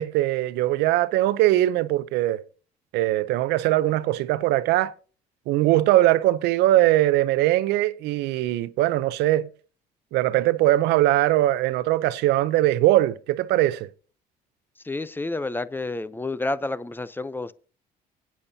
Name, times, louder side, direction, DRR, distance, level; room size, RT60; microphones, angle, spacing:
voice 1, 0.0-2.4 2.9-4.9 5.5-9.5 10.1-13.9, right 15 dB, 90° right, 0.6 m, -21 dB
voice 2, 14.8-17.5, left 2 dB, 10° left, 0.5 m, -29 dB
24.0 x 8.5 x 2.7 m
cardioid pair, 110°, 17 cm